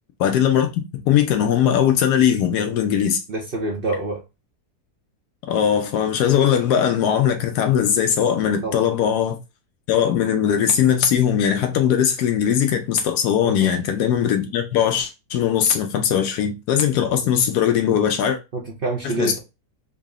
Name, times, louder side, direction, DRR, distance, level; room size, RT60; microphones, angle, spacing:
voice 1, 0.2-3.2 5.5-9.4 9.9-18.4 19.0-19.4, left 9 dB, 85° left, 1.2 m, -20 dB
voice 2, 3.3-4.2 8.6-8.9 13.4-13.7 18.5-19.4, right 3 dB, 55° right, 0.6 m, -27 dB
3.7 x 2.0 x 3.6 m
omnidirectional pair, 1.7 m